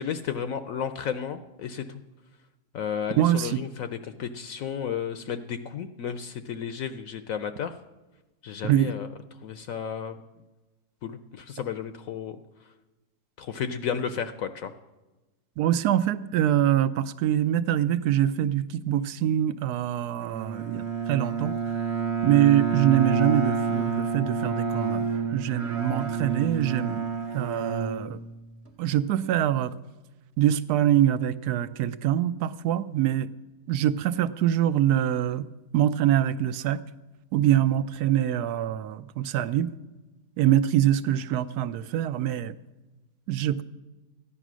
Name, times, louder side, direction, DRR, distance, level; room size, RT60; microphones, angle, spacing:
voice 1, 0.0-1.8 2.7-7.7 8.4-9.1 9.4-10.2 11.0-12.4 13.4-14.7, left 7 dB, 65° left, 10 dB, 0.9 m, -33 dB
voice 2, 3.2-3.6 8.6-8.9 15.6-21.6 22.2-27.0 27.3-28.2 28.8-29.7 30.4-33.3 33.7-35.4 35.7-36.8 37.3-39.7 40.4-42.5 43.3-43.6, right 11 dB, 75° right, 14 dB, 1.1 m, -24 dB
Bowed string instrument, 20.2-28.7, right 5 dB, 45° right, 1.2 m, -29 dB
14.0 x 9.9 x 6.2 m, 1.1 s
omnidirectional pair, 1.7 m